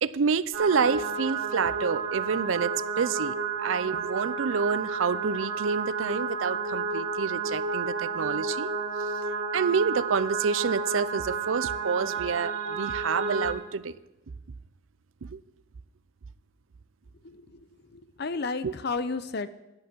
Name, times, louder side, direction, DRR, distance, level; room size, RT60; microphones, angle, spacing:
voice 1, 0.0-8.7 9.5-14.0 15.2-15.4 18.6-18.7, right 5 dB, 85° right, 17 dB, 0.5 m, -28 dB
sound 1, 0.5-13.5, right 4 dB, 65° right, 1.9 m, -31 dB
voice 2, 17.2-19.5, left 4 dB, 55° left, 13 dB, 0.7 m, -33 dB
12.0 x 10.5 x 6.2 m, 0.93 s
head